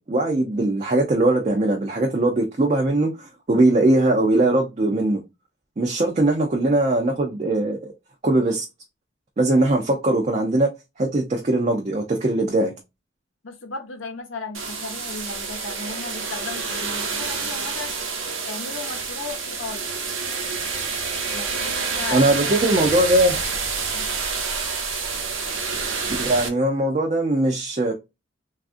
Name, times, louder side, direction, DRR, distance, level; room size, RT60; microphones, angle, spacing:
voice 1, 0.0-5.2 5.8-7.9 8.2-8.6 9.4-10.7 11.0-12.7 22.1-23.3 26.2-27.9, right 2 dB, 35° right, 0.4 m, -20 dB
voice 2, 13.4-18.0 18.5-19.9 20.3-20.7 21.3-22.7 23.9-24.1, left 4 dB, 80° left, 0.7 m, -36 dB
sound 1, 14.5-26.5, right 4 dB, 80° right, 0.7 m, -28 dB
3.4 x 2.4 x 2.4 m
head